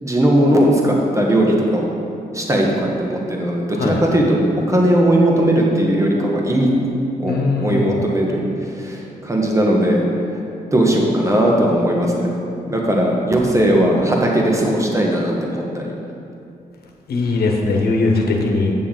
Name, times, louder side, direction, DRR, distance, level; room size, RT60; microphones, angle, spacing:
voice 1, 0.0-1.9 2.3-4.4 4.7-6.7 7.2-8.4 8.7-10.1 10.7-12.3 12.7-15.9, right 1 dB, 20° right, -1 dB, 1.4 m, -18 dB
voice 2, 7.3-8.0 17.1-18.7, left 3 dB, 80° left, 1 dB, 1.1 m, -19 dB
8.5 x 6.9 x 3.8 m, 2.6 s
cardioid pair, 70°, 16 cm